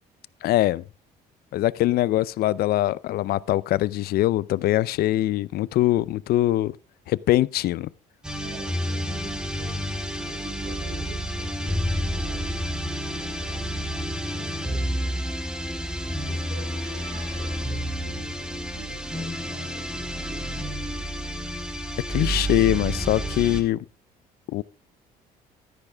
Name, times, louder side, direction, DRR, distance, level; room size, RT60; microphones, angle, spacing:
voice 1, 0.4-0.8 1.5-6.7 7.1-7.9 22.1-23.8 24.5-24.6, left 15 dB, 70° left, 0.5 m, -22 dB
sound 1, 8.2-23.7, equal, 5° right, 1.7 m, -30 dB
voice 2, 8.4-12.7 13.1-13.7 14.2-15.3 16.2-21.4, right 2 dB, 65° right, 5.1 m, -46 dB
sound 2, 14.3-19.0, right 2 dB, 80° right, 7.7 m, -51 dB
13.0 x 9.8 x 3.5 m
cardioid pair, 110°, 17 cm